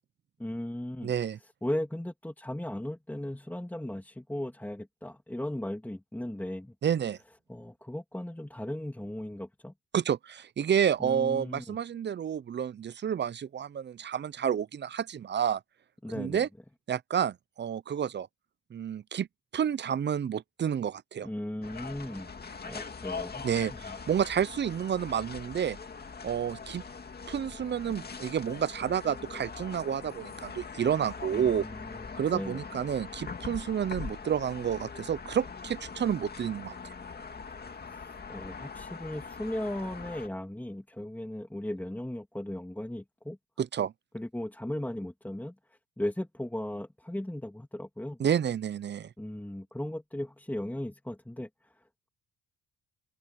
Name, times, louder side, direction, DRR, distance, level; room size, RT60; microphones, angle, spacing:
voice 1, 0.4-1.1 1.6-6.7 7.5-9.7 11.0-11.8 16.0-16.4 21.2-22.3 22.6-23.9 31.3-32.7 38.3-43.4 44.1-48.2 49.2-51.8, left 1 dB, 5° left, 2.8 m, -37 dB
voice 2, 1.0-1.4 6.8-7.2 9.9-15.6 16.1-16.5 16.9-18.3 18.7-19.3 19.5-21.3 23.4-25.8 26.2-26.8 27.3-31.7 32.2-36.9 43.6-43.9 48.2-49.1, right 8 dB, 35° right, 0.6 m, -30 dB
sound 1, 21.6-40.3, left 5 dB, 30° left, 2.2 m, -42 dB
open air
cardioid pair, 90°, 30 cm